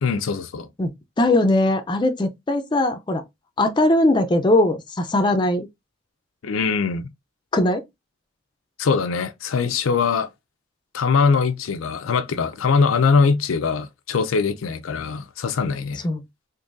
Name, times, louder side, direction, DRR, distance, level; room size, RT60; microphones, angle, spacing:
voice 1, 0.0-0.7 6.4-7.1 8.8-10.3 10.9-16.0, left 5 dB, 85° left, 0.5 m, -22 dB
voice 2, 1.2-3.2 3.6-5.7 7.5-7.8 16.0-16.2, left 1 dB, 20° left, 0.4 m, -20 dB
3.8 x 2.6 x 2.5 m
head